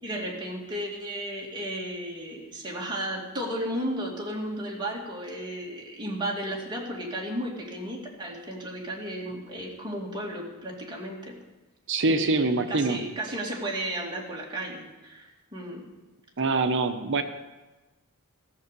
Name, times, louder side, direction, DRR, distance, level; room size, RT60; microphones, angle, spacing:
voice 1, 0.0-11.4 12.1-15.9, right 1 dB, 20° right, -3 dB, 2.4 m, -34 dB
voice 2, 11.9-13.0 16.4-17.2, right 3 dB, 55° right, 8 dB, 0.8 m, -24 dB
15.5 x 6.9 x 6.7 m, 1.1 s
head